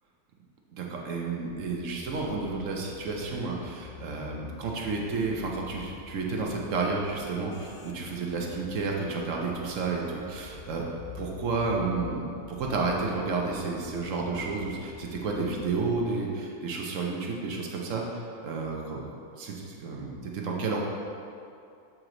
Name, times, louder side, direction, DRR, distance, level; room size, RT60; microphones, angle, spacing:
voice 1, 0.7-10.9 11.1-20.8, right 4 dB, 70° right, -1 dB, 1.2 m, -31 dB
sound 1, 1.5-16.0, left 6 dB, 60° left, 0.5 m, -47 dB
7.6 x 4.6 x 3.9 m, 2.5 s
omnidirectional pair, 1.4 m